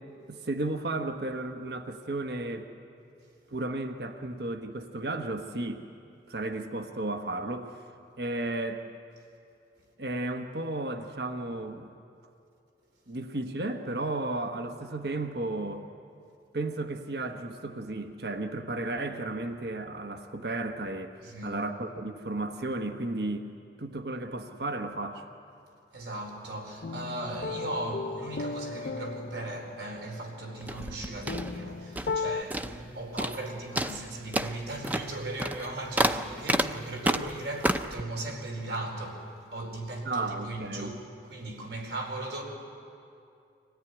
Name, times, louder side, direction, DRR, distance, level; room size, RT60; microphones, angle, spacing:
voice 1, 0.3-2.7 3.5-5.8 6.3-7.8 8.2-8.8 10.0-11.9 13.1-15.9 16.5-21.2 21.4-23.5 23.8-25.3 40.0-40.9, right 2 dB, 65° right, 1.2 m, -33 dB
voice 2, 21.2-21.6 25.9-39.3 39.5-41.0 41.2-42.4, right 2 dB, 80° right, 4.5 m, -37 dB
sound 1, 26.8-32.4, left 4 dB, 60° left, 0.5 m, -36 dB
sound 2, 30.6-32.2 32.5-32.9 33.2-33.5 33.8-38.0, right 1 dB, 10° right, 0.6 m, -30 dB
25.0 x 17.5 x 9.9 m
head